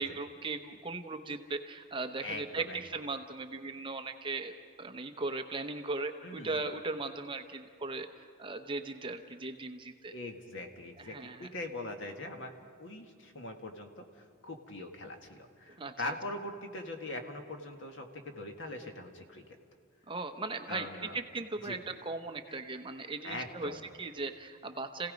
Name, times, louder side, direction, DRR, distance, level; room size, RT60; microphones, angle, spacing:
voice 1, 0.0-4.5 4.8-8.1 8.4-10.1 11.0-11.5 15.8-16.1 20.1-20.9 21.1-25.1, right 3 dB, 25° right, 6 dB, 0.8 m, -38 dB
voice 2, 2.2-2.8 6.2-6.6 10.1-12.5 12.8-19.4 20.7-21.2 21.6-21.8 22.5-22.6 23.2-23.8, left 2 dB, 60° left, 4 dB, 1.8 m, -42 dB
30.0 x 17.0 x 5.2 m, 2.1 s
head